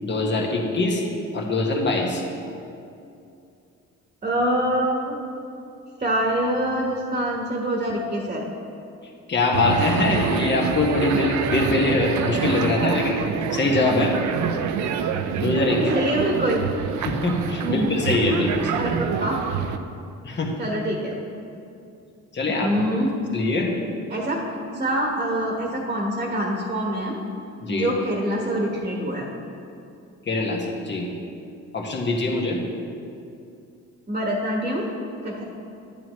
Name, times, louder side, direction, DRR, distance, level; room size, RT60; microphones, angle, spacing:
voice 1, 0.0-1.0 1.3-2.2 9.3-13.2 13.5-14.2 15.4-15.8 17.0-18.9 20.2-20.5 22.3-22.7 23.0-23.1 23.3-23.7 27.6-27.9 30.2-31.1 31.7-32.6, left 2 dB, 35° left, -1 dB, 1.6 m, -23 dB
voice 2, 4.2-5.2 6.0-8.5 15.7-16.6 17.6-17.9 18.8-19.4 20.6-21.2 22.6-23.2 24.1-27.2 27.7-29.3 34.1-34.9 35.2-35.4, right 1 dB, 25° right, -1 dB, 1.3 m, -25 dB
sound 1, 9.5-19.8, right 7 dB, 70° right, 0.6 m, -27 dB
10.5 x 8.6 x 3.1 m, 2.6 s
cardioid pair, 90°, 30 cm